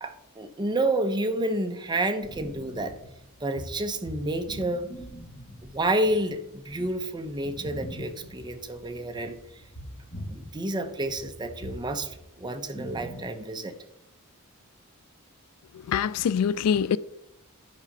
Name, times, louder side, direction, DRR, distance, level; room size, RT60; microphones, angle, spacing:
voice 1, 0.0-3.0 3.4-4.9 5.6-9.4 10.3-13.7, right 1 dB, 20° right, 0.7 m, -29 dB
sound 1, 2.2-10.5 10.8-13.2, equal, 40° left, 2.4 m, -43 dB
voice 2, 15.9-17.0, left 7 dB, 80° left, 0.4 m, -24 dB
9.8 x 5.0 x 5.3 m
head